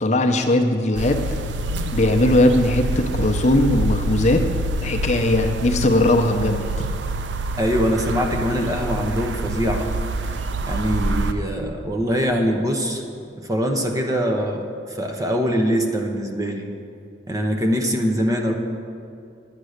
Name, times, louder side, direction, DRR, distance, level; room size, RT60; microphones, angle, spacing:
voice 1, 0.0-1.4 1.9-4.5 4.8-6.6, left 1 dB, 40° left, 4 dB, 0.7 m, -19 dB
sound 1, 0.9-11.3, right 2 dB, 85° right, 0.6 m, -26 dB
voice 2, 7.6-9.9 10.7-13.0 13.4-16.7 17.3-18.5, equal, 20° right, 3 dB, 0.9 m, -23 dB
9.7 x 9.0 x 6.5 m, 2.4 s
head